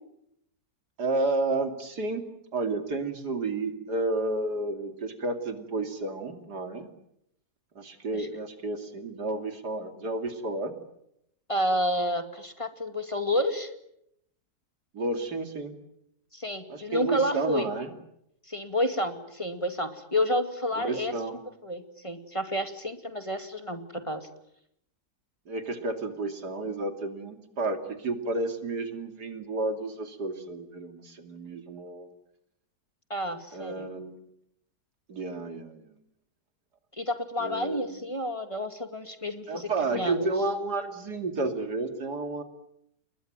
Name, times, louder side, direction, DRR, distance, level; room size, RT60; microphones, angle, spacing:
voice 1, 1.0-2.2 2.5-6.9 7.7-10.7 14.9-15.7 16.7-17.9 20.7-21.3 25.5-32.1 33.5-34.2 35.1-35.9 37.4-38.0 39.5-42.4, right 2 dB, 90° right, 7 dB, 3.3 m, -31 dB
voice 2, 11.5-13.7 16.3-17.7 18.5-21.1 21.6-24.3 33.1-33.9 37.0-40.3, left 1 dB, 20° left, 8 dB, 2.3 m, -30 dB
30.0 x 21.0 x 9.1 m, 0.77 s
omnidirectional pair, 1.7 m